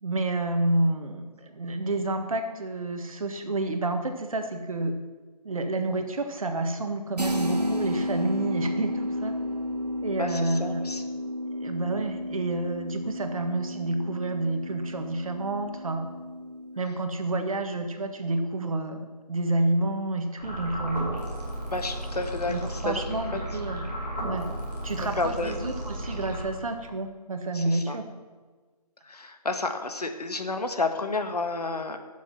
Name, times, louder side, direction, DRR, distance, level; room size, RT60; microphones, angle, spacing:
voice 1, 0.0-4.9 5.4-9.4 10.0-10.9 11.6-16.1 16.8-21.1 22.5-23.9 24.2-24.5 24.8-28.0, right 2 dB, 60° right, 6 dB, 1.8 m, -29 dB
sound 1, 7.2-16.8, left 1 dB, 85° right, 1.9 m, -32 dB
voice 2, 10.2-11.0 21.7-23.0 25.0-25.5 27.5-28.0 29.0-32.0, left 3 dB, 75° left, 6 dB, 1.6 m, -30 dB
sound 2, 20.4-26.9, right 1 dB, ahead, 0.3 m, -34 dB
15.0 x 7.3 x 6.0 m, 1.4 s
figure-of-eight pair, 155°, 20 cm